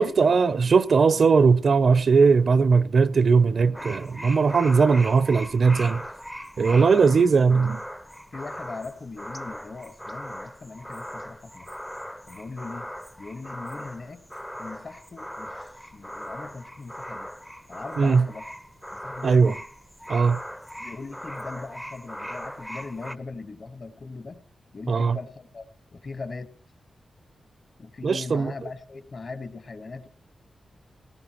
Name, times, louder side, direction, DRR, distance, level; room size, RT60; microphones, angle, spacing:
voice 1, 0.0-6.0 6.6-7.8 18.0-18.3 19.2-19.5 20.1-20.4 24.9-25.2 28.0-28.5, right 5 dB, 55° right, 0.6 m, -19 dB
sound 1, 3.7-23.2, equal, 5° left, 0.6 m, -39 dB
voice 2, 6.7-7.3 8.3-11.7 12.3-12.9 13.2-14.2 14.6-17.3 17.7-18.5 18.9-19.6 20.8-24.4 24.7-25.6 25.9-26.5 27.8-30.1, left 3 dB, 45° left, 1.4 m, -39 dB
19.5 x 18.5 x 3.0 m
wide cardioid pair, 140°, 0 cm